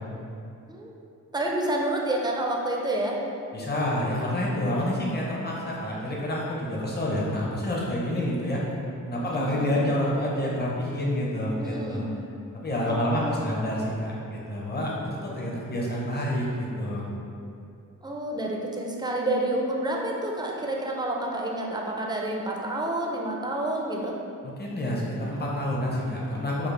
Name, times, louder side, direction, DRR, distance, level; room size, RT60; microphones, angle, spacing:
voice 1, 1.3-3.2 9.2-9.7 11.6-12.1 12.9-13.6 18.0-24.2, right 1 dB, 15° right, -1 dB, 0.4 m, -29 dB
voice 2, 3.5-8.7 9.1-12.1 12.6-17.1 24.4-26.7, left 1 dB, 30° left, -4 dB, 0.7 m, -28 dB
4.8 x 2.0 x 3.2 m, 2.6 s
wide cardioid pair, 85°, 33 cm